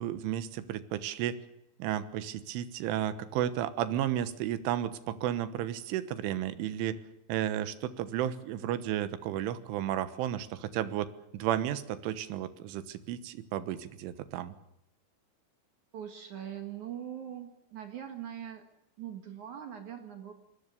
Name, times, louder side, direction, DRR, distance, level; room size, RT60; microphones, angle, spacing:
voice 1, 0.0-1.4 1.8-7.0 7.3-11.1 11.3-14.6, right 11 dB, 75° right, 12 dB, 3.6 m, -33 dB
voice 2, 15.9-18.7 19.0-20.3, right 10 dB, 60° right, 6 dB, 2.1 m, -42 dB
25.5 x 20.5 x 6.8 m, 0.83 s
omnidirectional pair, 5.8 m